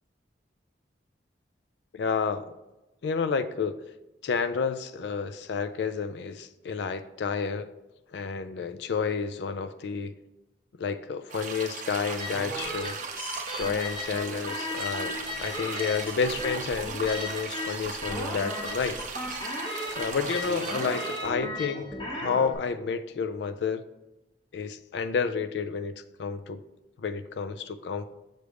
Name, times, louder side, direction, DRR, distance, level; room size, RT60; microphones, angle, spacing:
voice 1, 1.9-2.5 3.0-3.7 4.2-7.7 8.1-10.2 10.8-13.0 13.5-19.0 19.5-19.6 20.0-23.8 24.5-25.9 26.2-26.6 27.0-28.0, left 5 dB, 75° left, 0.4 m, -30 dB
sound 1, 11.3-21.3, right 5 dB, 45° right, 0.5 m, -38 dB
sound 2, 12.2-22.5, left 1 dB, 25° left, 1.2 m, -36 dB
6.6 x 3.4 x 4.8 m
head